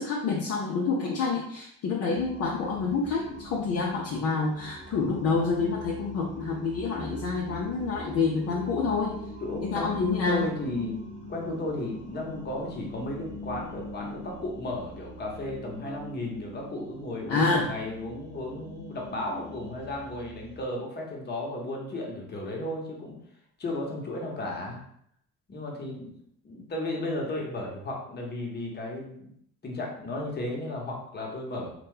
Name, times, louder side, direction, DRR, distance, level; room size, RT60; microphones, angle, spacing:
voice 1, 0.0-9.2 9.7-10.5 17.3-17.7, left 4 dB, 50° left, -2 dB, 0.6 m, -27 dB
sound 1, 2.1-20.7, equal, 70° right, 0.9 m, -43 dB
voice 2, 9.4-11.0 11.3-23.1 23.6-24.8 25.5-26.1 26.4-29.3 29.6-31.7, left 1 dB, 30° left, -1 dB, 1.0 m, -34 dB
2.8 x 2.2 x 3.1 m, 0.68 s
supercardioid pair, 75°, 32 cm